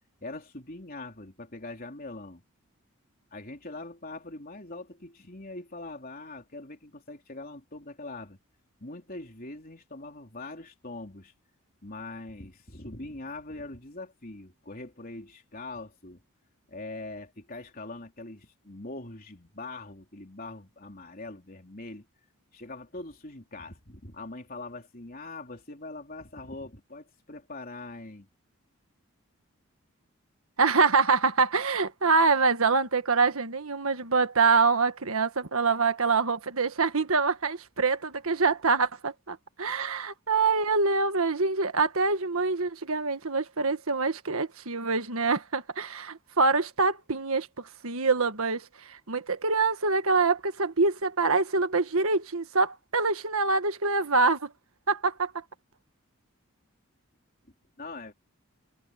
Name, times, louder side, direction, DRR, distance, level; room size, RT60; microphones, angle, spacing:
voice 1, 0.2-2.4 3.3-8.4 8.8-11.3 11.8-16.2 16.7-22.0 22.5-28.3 57.8-58.1, left 2 dB, 40° left, 3.9 m, -42 dB
voice 2, 30.6-54.5 54.9-55.4, right 4 dB, 75° right, 1.6 m, -25 dB
head